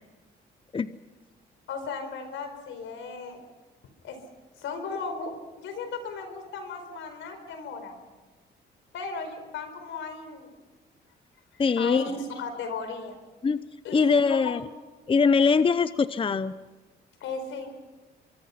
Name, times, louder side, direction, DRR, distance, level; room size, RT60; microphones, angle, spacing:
voice 1, 1.7-3.4 4.0-4.2 4.6-5.3 5.6-8.0 8.9-10.5 11.5-13.1 13.8-14.6 17.2-17.7, left 4 dB, 80° left, 7 dB, 4.6 m, -36 dB
voice 2, 11.6-12.1 13.4-13.6 13.9-14.6 15.1-16.5, left 5 dB, 25° left, 14 dB, 0.7 m, -22 dB
24.0 x 24.0 x 5.8 m, 1.2 s
cardioid pair, 90°, 20 cm